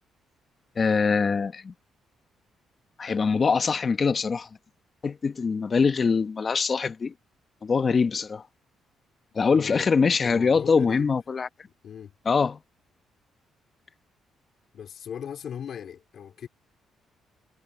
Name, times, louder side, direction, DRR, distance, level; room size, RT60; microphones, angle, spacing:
voice 1, 0.8-1.7 3.0-4.5 5.0-7.1 7.6-8.4 9.3-11.5 12.2-12.6, left 5 dB, 40° left, 1.3 m, -23 dB
voice 2, 9.5-9.9 10.2-11.1 11.8-12.1 14.7-16.5, left 8 dB, 60° left, 3.9 m, -38 dB
cardioid pair, 90°, 0 cm